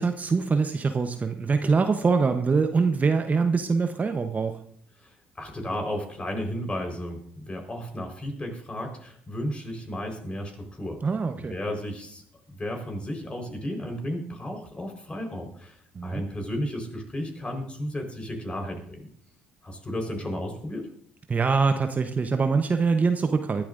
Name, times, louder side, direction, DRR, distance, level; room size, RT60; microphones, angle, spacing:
voice 1, 0.0-4.6 11.0-11.5 15.9-16.2 21.3-23.7, right 4 dB, 30° right, 7 dB, 0.9 m, -24 dB
voice 2, 5.0-11.0 11.4-19.1 19.6-20.9, left 1 dB, 25° left, 3 dB, 4.3 m, -34 dB
22.0 x 12.0 x 2.6 m, 0.62 s
hypercardioid pair, 60°, 5 cm